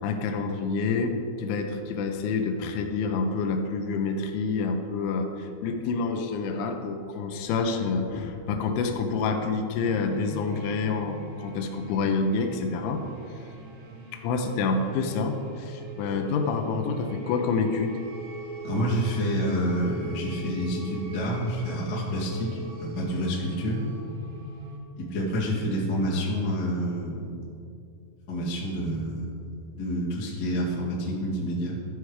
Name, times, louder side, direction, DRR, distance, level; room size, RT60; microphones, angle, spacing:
voice 1, 0.0-13.0 14.1-18.0, left 4 dB, 90° left, 5 dB, 3.2 m, -28 dB
sound 1, 9.8-24.8, right 2 dB, 85° right, 3.6 m, -41 dB
voice 2, 18.6-23.8 25.0-27.3 28.3-29.4 29.8-31.7, equal, 70° left, -6 dB, 1.0 m, -28 dB
14.0 x 4.8 x 4.7 m, 2.6 s
omnidirectional pair, 5.5 m